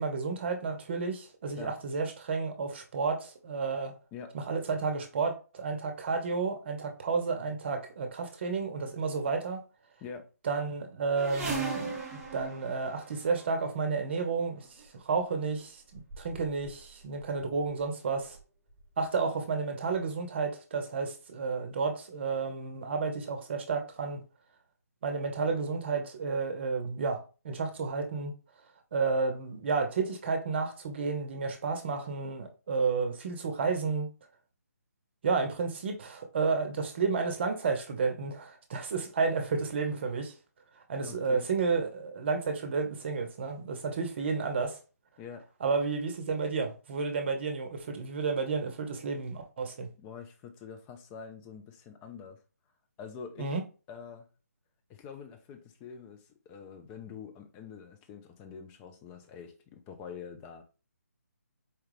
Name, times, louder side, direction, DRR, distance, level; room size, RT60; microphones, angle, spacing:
voice 1, 0.0-4.0 4.3-9.6 10.4-18.4 19.0-24.2 25.0-28.3 28.9-34.1 35.2-40.3 40.9-44.8 45.6-49.9 53.4-53.6, right 4 dB, 40° right, 0.8 m, -31 dB
sound 1, 11.2-13.6 14.6-14.8 15.6-15.7 15.9-16.8 17.1-17.7 18.4-18.5 18.8-18.9, right 4 dB, 10° right, 0.7 m, -38 dB
voice 2, 41.0-41.5 45.2-45.5 49.9-52.4 53.0-53.6 53.9-54.3 54.9-60.6, left 6 dB, 15° left, 0.4 m, -45 dB
4.5 x 2.3 x 3.2 m
figure-of-eight pair, 155°, 9 cm